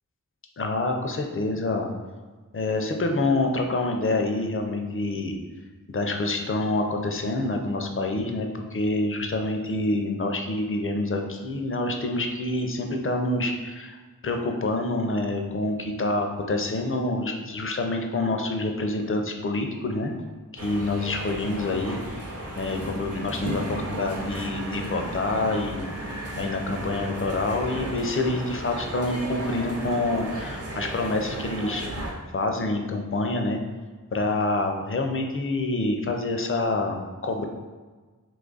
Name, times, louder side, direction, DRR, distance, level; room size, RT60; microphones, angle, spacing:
voice 1, 0.6-1.9 2.5-5.4 5.9-14.0 14.2-20.1 20.5-22.0 22.6-25.9 26.4-31.9 32.3-33.6 34.1-37.5, left 2 dB, 40° left, 3 dB, 0.4 m, -27 dB
sound 1, 20.6-32.1, right 1 dB, 45° right, 0.7 m, -34 dB
2.9 x 2.4 x 3.8 m, 1.4 s
wide cardioid pair, 45°, 33 cm